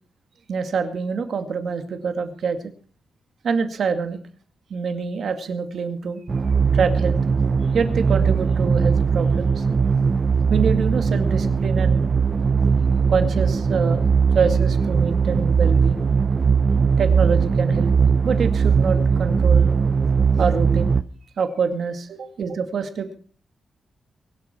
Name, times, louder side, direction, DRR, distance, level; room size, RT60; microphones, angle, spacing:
voice 1, 0.5-2.6 3.4-4.2 4.7-6.2 6.7-7.2 7.7-9.6 10.5-12.1 13.1-14.1 14.3-16.0 17.0-17.9 18.2-19.8 20.4-21.0 21.4-23.2, right 5 dB, 60° right, 7 dB, 2.2 m, -25 dB
sound 1, 6.3-21.0, right 5 dB, 30° right, 0.6 m, -19 dB
23.0 x 12.0 x 4.5 m, 0.43 s
wide cardioid pair, 175°, 0 cm